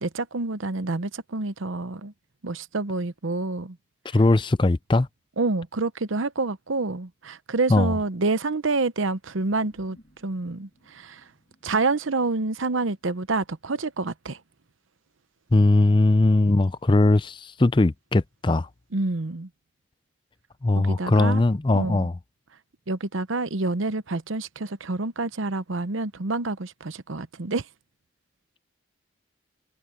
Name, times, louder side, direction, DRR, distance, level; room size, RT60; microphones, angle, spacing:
voice 1, 0.0-2.1 2.4-3.8 5.4-10.0 10.2-11.2 11.6-14.4 18.9-19.5 20.8-21.4 21.7-22.1 22.9-27.6, right 3 dB, 90° right, 0.9 m, -28 dB
voice 2, 4.0-5.1 7.7-8.0 15.5-18.7 20.6-22.2, left 2 dB, 25° left, 0.4 m, -20 dB
sound 1, 9.4-14.1, equal, 40° left, 6.9 m, -59 dB
head